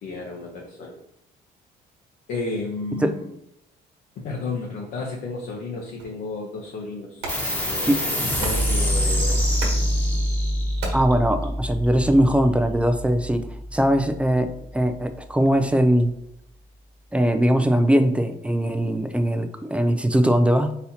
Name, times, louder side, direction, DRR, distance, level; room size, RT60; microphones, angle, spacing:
voice 1, 0.0-1.0 2.3-3.3 4.2-9.4, left 3 dB, 65° left, -1 dB, 0.8 m, -33 dB
sound 1, 6.0-12.1, right 2 dB, 80° right, 1.1 m, -40 dB
sound 2, 7.3-14.2, equal, 10° left, 1.1 m, -25 dB
voice 2, 10.9-13.5 13.7-16.1 17.1-20.8, right 1 dB, 5° right, 7 dB, 0.3 m, -20 dB
4.1 x 4.1 x 2.8 m, 0.76 s
cardioid pair, 110°, 17 cm